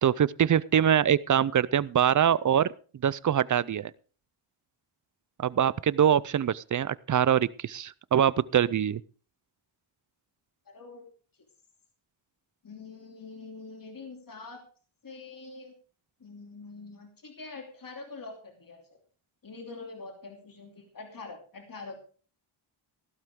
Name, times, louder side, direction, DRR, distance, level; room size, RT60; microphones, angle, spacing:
voice 1, 0.0-2.7 3.0-3.9 5.4-9.0, right 9 dB, 40° right, 21 dB, 0.5 m, -24 dB
voice 2, 10.7-11.1 12.6-14.6 15.0-15.7 16.2-19.0 19.4-22.0, left 3 dB, 40° left, 3 dB, 2.9 m, -44 dB
15.0 x 12.0 x 3.7 m, 0.40 s
wide cardioid pair, 95°, 50 cm